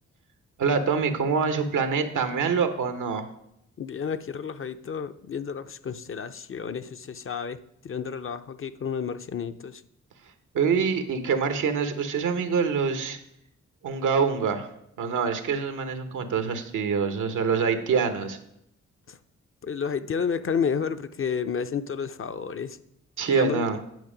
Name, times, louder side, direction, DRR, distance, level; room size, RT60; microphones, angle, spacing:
voice 1, 0.6-3.2 10.5-13.2 13.8-14.7 15.0-18.4 23.2-23.8, right 5 dB, 90° right, 8 dB, 0.9 m, -25 dB
voice 2, 3.8-7.6 7.8-9.8 19.1-19.2 19.6-22.8 23.3-23.6, left 6 dB, 45° left, 11 dB, 0.5 m, -31 dB
9.3 x 5.2 x 5.0 m, 0.77 s
cardioid pair, 65°, 30 cm